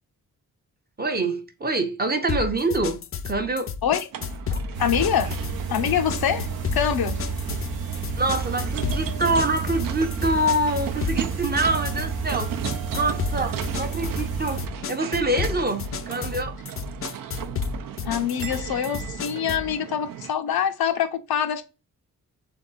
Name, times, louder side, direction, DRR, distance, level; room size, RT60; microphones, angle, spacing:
voice 1, 1.0-3.0 3.3-3.7 4.5-4.6 8.2-12.6 12.9-16.6, right 2 dB, 25° right, 0.6 m, -25 dB
sound 1, 2.3-19.7, left 6 dB, 40° left, 0.4 m, -32 dB
sound 2, 4.1-20.3, right 10 dB, 65° right, 0.5 m, -36 dB
sound 3, 4.7-14.7, right 5 dB, 85° right, 1.0 m, -31 dB
voice 2, 4.8-5.3 5.7-6.5 6.7-7.2 18.0-21.6, left 9 dB, 85° left, 0.7 m, -24 dB
3.7 x 3.5 x 4.0 m
wide cardioid pair, 105°, 36 cm